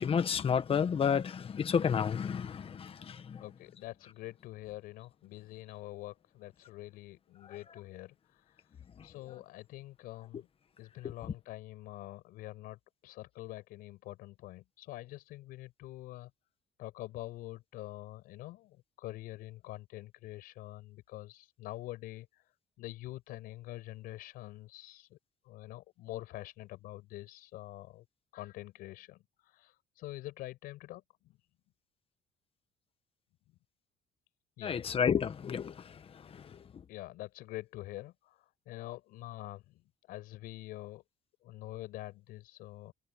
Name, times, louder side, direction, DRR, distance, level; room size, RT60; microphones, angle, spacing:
voice 1, 0.0-3.4 11.0-11.1 34.6-36.0 36.3-36.4, left 7 dB, 40° left, 1.6 m, -31 dB
voice 2, 3.4-10.5 10.8-16.3 16.8-22.5 22.8-25.2 25.4-28.0 28.3-31.4 34.6-34.8 36.9-41.0 41.4-42.9, left 17 dB, 80° left, 5.8 m, -46 dB
cardioid pair, 105°, 15 cm